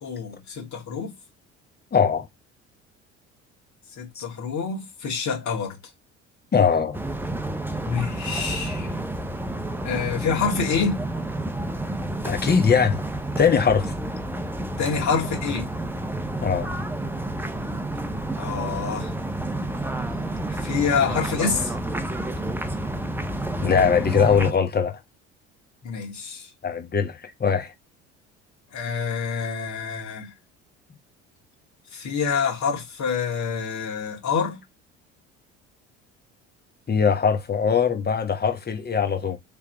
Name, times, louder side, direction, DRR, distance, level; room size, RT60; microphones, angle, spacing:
voice 1, 0.0-1.1 4.0-5.8 7.8-9.0 9.8-11.0 14.8-15.7 18.4-19.1 20.5-21.7 25.8-26.5 28.7-30.3 31.9-34.6, left 6 dB, 55° left, 2.1 m, -27 dB
voice 2, 1.9-2.2 4.1-4.2 6.5-7.0 12.2-13.0 13.4-13.9 16.4-16.7 23.6-25.0 26.6-27.7 36.9-39.4, left 6 dB, 30° left, 1.2 m, -21 dB
sound 1, 6.9-24.5, right 1 dB, 5° right, 0.7 m, -30 dB
3.4 x 3.3 x 3.3 m
hypercardioid pair, 65°, 35 cm